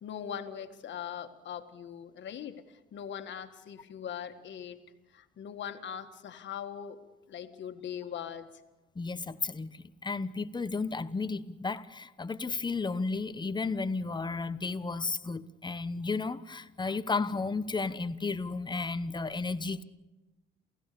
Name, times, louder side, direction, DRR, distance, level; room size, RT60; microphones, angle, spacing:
voice 1, 0.0-2.6 2.9-4.8 5.1-7.0 7.3-8.5, left 8 dB, 65° left, 8 dB, 1.8 m, -40 dB
voice 2, 9.0-19.8, left 4 dB, 20° left, 13 dB, 1.0 m, -33 dB
28.5 x 15.5 x 6.8 m, 1.1 s
cardioid pair, 90°, 20 cm